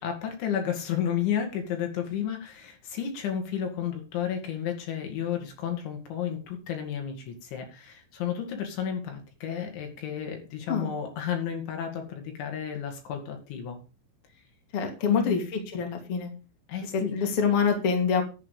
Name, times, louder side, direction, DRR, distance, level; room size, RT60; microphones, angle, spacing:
voice 1, 0.0-13.8 15.1-15.4 16.7-17.3, left 9 dB, 70° left, 3 dB, 4.6 m, -32 dB
voice 2, 14.7-16.3 16.9-18.2, left 6 dB, 35° left, 2 dB, 2.8 m, -26 dB
11.5 x 8.5 x 5.1 m, 0.32 s
omnidirectional pair, 5.6 m